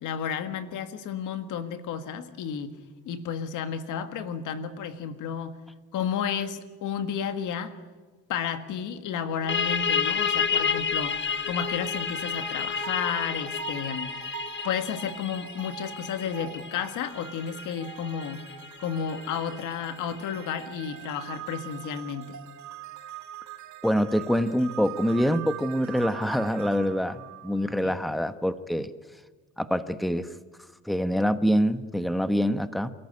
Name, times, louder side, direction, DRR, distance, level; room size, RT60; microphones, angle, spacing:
voice 1, 0.0-2.8 3.1-5.6 5.9-7.7 8.3-11.2 11.5-14.2 14.6-18.4 18.8-22.4 27.8-28.0, left 7 dB, 85° left, 9 dB, 1.7 m, -32 dB
sound 1, 9.5-20.8, left 6 dB, 40° left, 1.1 m, -31 dB
sound 2, 11.0-28.1, right 12 dB, 70° right, 1.7 m, -43 dB
voice 2, 23.8-28.9 29.6-30.3 30.8-32.9, equal, ahead, 11 dB, 1.2 m, -25 dB
28.0 x 14.0 x 9.9 m, 1.3 s
cardioid pair, 90°, 30 cm